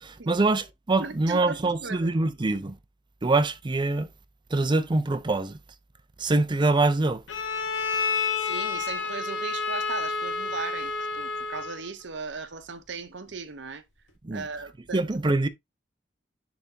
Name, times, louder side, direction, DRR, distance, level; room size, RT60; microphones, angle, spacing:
voice 1, 0.0-2.8 3.2-4.1 4.5-5.6 6.2-7.2 14.2-14.4 14.9-15.5, right 2 dB, 25° right, 0.5 m, -24 dB
voice 2, 1.0-2.2 8.4-13.8 14.3-15.1, right 4 dB, 65° right, 0.8 m, -37 dB
Bowed string instrument, 7.3-11.9, left 5 dB, 85° left, 1.4 m, -29 dB
10.5 x 3.5 x 2.7 m
head